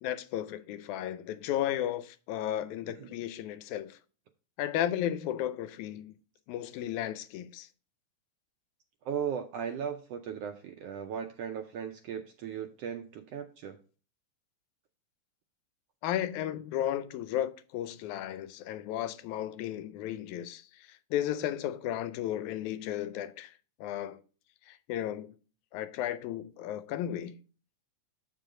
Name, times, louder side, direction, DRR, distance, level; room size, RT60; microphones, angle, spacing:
voice 1, 0.0-4.0 4.6-6.1 6.5-7.7 16.0-23.5 23.8-24.2 24.7-25.4 25.7-27.4, left 11 dB, 90° left, 2.0 m, -34 dB
voice 2, 9.0-13.8, right 8 dB, 80° right, 1.4 m, -37 dB
7.6 x 5.1 x 3.7 m
omnidirectional pair, 3.3 m